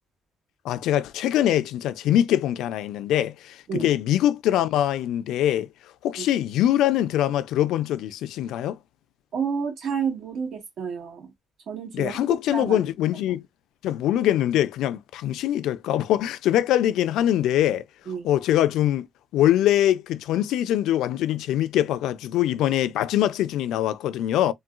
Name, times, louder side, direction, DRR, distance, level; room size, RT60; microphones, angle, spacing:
voice 1, 0.6-5.7 6.0-8.8 11.9-13.4 13.8-17.8 18.2-19.1 19.3-24.5, left 12 dB, 90° left, 0.3 m, -23 dB
voice 2, 9.3-11.3 11.7-12.9 18.1-18.3, right 6 dB, 75° right, 1.5 m, -30 dB
3.8 x 2.2 x 2.3 m
cardioid pair, 90°, 0 cm